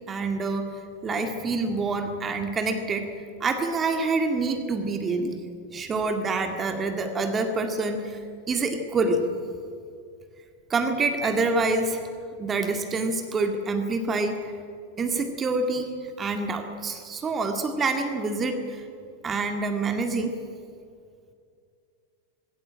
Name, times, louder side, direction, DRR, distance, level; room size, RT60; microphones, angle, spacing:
voice 1, 0.1-0.7 1.0-3.1 3.4-5.4 5.7-8.2 8.5-9.2 10.7-12.0 12.4-14.5 15.0-15.9 16.2-18.6 19.2-20.3, right 3 dB, 20° right, 6 dB, 2.0 m, -26 dB
20.5 x 16.5 x 8.8 m, 2.4 s
figure-of-eight pair, 90°, 0 cm